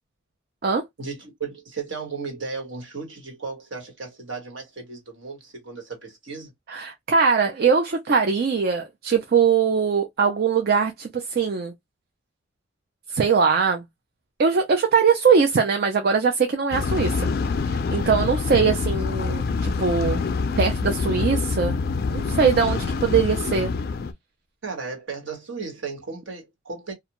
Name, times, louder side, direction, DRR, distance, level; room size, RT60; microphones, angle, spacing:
voice 1, 1.0-6.5 24.6-26.9, right 4 dB, 65° right, 1.2 m, -35 dB
voice 2, 6.7-11.7 13.1-13.8 14.4-17.3 17.6-20.2 20.6-21.8 22.1-23.7, right 5 dB, 45° right, 0.4 m, -21 dB
sound 1, 16.7-24.1, left 4 dB, 45° left, 0.3 m, -25 dB
2.4 x 2.2 x 2.9 m
head